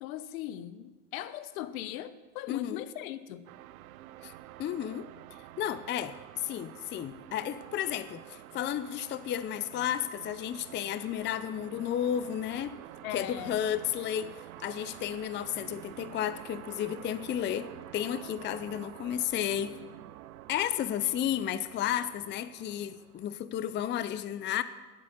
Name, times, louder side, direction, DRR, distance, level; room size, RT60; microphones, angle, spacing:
voice 1, 0.0-3.5 13.0-13.6, left 12 dB, 70° left, 14 dB, 0.9 m, -39 dB
voice 2, 2.5-2.8 4.2-4.3 4.6-5.1 5.6-12.8 13.1-19.8 20.5-24.6, left 10 dB, 25° left, 14 dB, 0.5 m, -33 dB
sound 1, 3.5-23.4, right 15 dB, 85° right, 0.6 m, -48 dB
10.0 x 8.3 x 7.4 m, 1.3 s
supercardioid pair, 100°, 42 cm